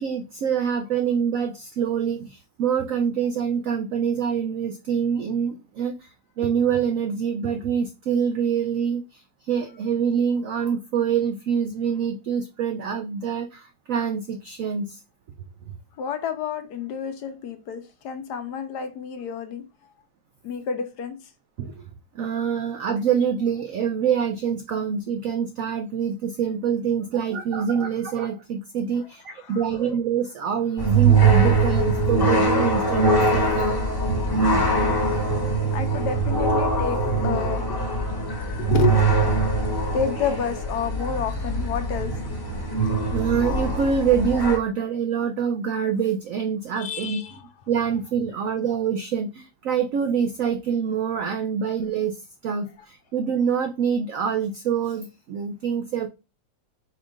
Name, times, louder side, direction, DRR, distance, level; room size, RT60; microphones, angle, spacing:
voice 1, 0.0-6.1 6.4-15.0 21.6-21.8 22.1-33.8 34.5-34.7 43.1-47.2 47.7-52.1 52.4-56.1, right 7 dB, 90° right, 0.7 m, -25 dB
voice 2, 16.0-19.6 20.4-21.2 29.4-29.7 35.7-38.3 38.6-39.3 39.9-42.2 43.0-43.1 46.8-47.5, left 7 dB, 70° left, 1.2 m, -30 dB
sound 1, 30.8-44.6, right 3 dB, 15° left, 0.9 m, -22 dB
4.5 x 2.4 x 4.9 m
omnidirectional pair, 2.0 m